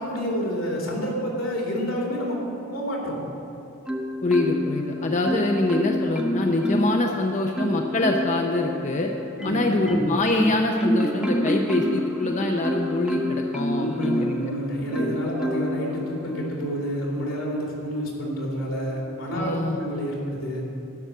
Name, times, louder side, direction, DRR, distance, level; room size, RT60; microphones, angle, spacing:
voice 1, 0.0-2.4 2.7-3.2 9.3-10.0 13.7-20.6, equal, 90° left, -3 dB, 3.0 m, -29 dB
Marimba xylophone, 3.9-4.8 5.2-7.1 7.5-8.4 9.0-14.4 14.9-15.8 16.4-16.6, equal, 5° right, 0.6 m, -27 dB
voice 2, 4.2-9.1 9.4-14.5 19.3-19.8, left 2 dB, 35° left, 2 dB, 0.6 m, -24 dB
12.0 x 6.2 x 8.1 m, 2.9 s
head